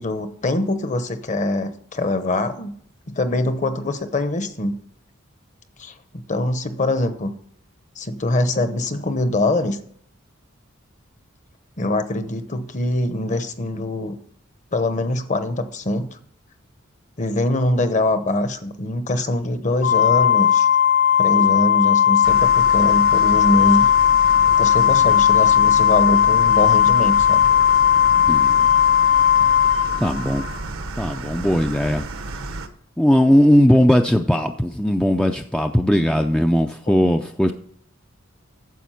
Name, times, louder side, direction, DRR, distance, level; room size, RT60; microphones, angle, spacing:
voice 1, 0.0-2.7 3.1-4.8 5.8-6.0 6.3-7.3 8.0-9.8 11.8-14.2 14.7-16.2 17.2-20.7 21.2-23.9 24.6-27.4, left 1 dB, 35° left, 11 dB, 0.9 m, -23 dB
Organ, 19.8-30.6, left 9 dB, 65° left, 2.3 m, -16 dB
sound 1, 22.2-32.7, right 3 dB, 85° right, 1.1 m, -32 dB
voice 2, 28.3-28.7 29.9-30.5 31.0-32.1 33.0-37.5, equal, 5° left, 5 dB, 0.4 m, -18 dB
9.4 x 7.3 x 5.7 m, 0.62 s
head